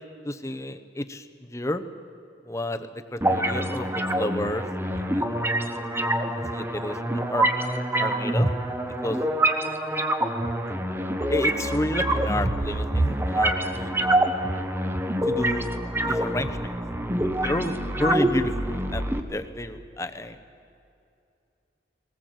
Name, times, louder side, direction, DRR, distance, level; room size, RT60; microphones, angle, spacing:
voice 1, 0.2-1.9 2.4-4.7 4.9-5.5 6.5-7.7 8.0-8.5 9.0-9.2 11.3-14.2 15.2-15.7 16.0-16.8 17.1-20.4, left 1 dB, 15° left, 8 dB, 0.9 m, -31 dB
sound 1, 3.2-19.2, right 1 dB, 15° right, 0.9 m, -26 dB
20.5 x 19.5 x 7.9 m, 2.6 s
head